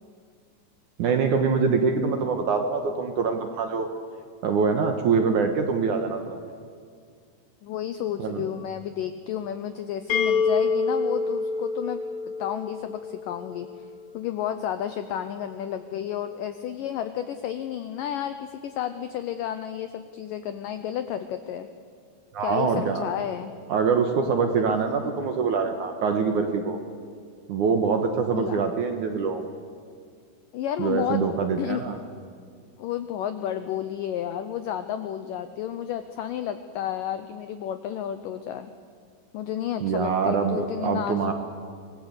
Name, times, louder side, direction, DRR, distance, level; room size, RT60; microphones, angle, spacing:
voice 1, 1.0-3.9 4.4-6.4 8.2-8.5 22.3-23.0 23.7-26.8 27.5-29.5 30.8-32.0 39.8-41.3, right 5 dB, 65° right, 5 dB, 2.1 m, -24 dB
voice 2, 7.6-12.0 12.4-13.7 14.1-21.7 22.4-23.5 28.3-28.6 30.5-31.3 31.6-32.0 32.8-38.7 39.3-41.3, left 10 dB, 80° left, 9 dB, 1.9 m, -31 dB
sound 1, 10.1-13.8, left 4 dB, 65° left, 3.0 m, -27 dB
26.0 x 19.5 x 8.3 m, 2.1 s
omnidirectional pair, 5.0 m